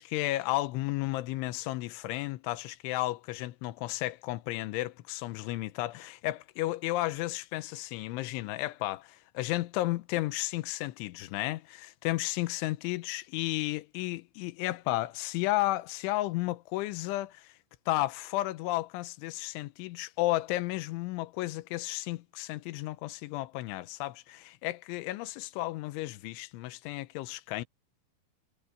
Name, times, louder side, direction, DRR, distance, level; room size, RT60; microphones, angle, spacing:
voice 1, 0.0-17.5 17.9-27.6, left 18 dB, 85° left, 3.2 m, -33 dB
omnidirectional pair, 5.5 m